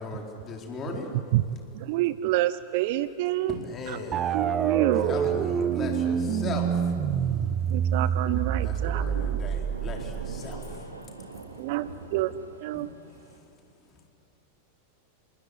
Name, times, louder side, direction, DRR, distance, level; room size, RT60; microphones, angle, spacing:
voice 1, 0.0-1.1 3.5-4.3 5.0-6.8 8.6-10.9 12.7-12.9, left 4 dB, 25° left, 2 dB, 4.3 m, -38 dB
voice 2, 1.1-1.5 1.7-3.6 3.9-4.0 4.3-5.2 7.7-9.0 9.3-9.4 11.6-12.3 12.6-12.9, right 15 dB, 50° right, 15 dB, 0.7 m, -27 dB
sound 1, 4.1-10.8, right 8 dB, 30° right, 1.2 m, -27 dB
Thunder / Rain, 7.9-13.4, right 3 dB, 70° right, 2.6 m, -43 dB
voice 3, 10.4-11.4, equal, 90° left, 10 dB, 0.8 m, -50 dB
25.5 x 22.0 x 9.8 m, 2.7 s
figure-of-eight pair, 90°, 0 cm